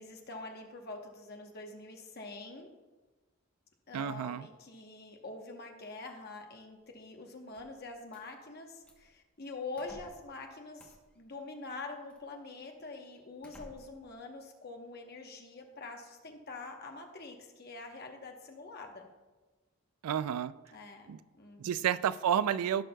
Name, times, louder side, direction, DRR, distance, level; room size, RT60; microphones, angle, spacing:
voice 1, 0.0-2.7 3.9-19.1 20.7-21.9, left 3 dB, 45° left, 1.0 m, -45 dB
voice 2, 3.9-4.5 20.0-20.5 21.1-21.2 21.6-22.9, right 9 dB, 85° right, 0.3 m, -30 dB
sound 1, 7.5-8.3 8.8-9.2 9.8-10.3 10.8-11.2 12.1-12.2 12.8-12.9 13.4-14.1, equal, 5° left, 0.9 m, -55 dB
15.0 x 6.1 x 2.3 m
head